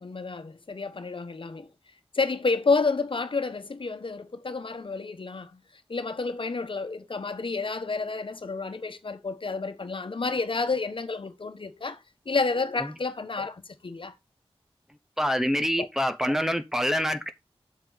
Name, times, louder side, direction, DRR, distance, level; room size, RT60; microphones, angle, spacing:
voice 1, 0.0-1.7 2.1-5.6 5.9-12.0 12.3-14.1 15.8-15.9, left 4 dB, 55° left, 1.2 m, -30 dB
voice 2, 15.2-17.3, equal, 5° right, 0.8 m, -26 dB
7.8 x 7.5 x 4.0 m
wide cardioid pair, 95°, 10 cm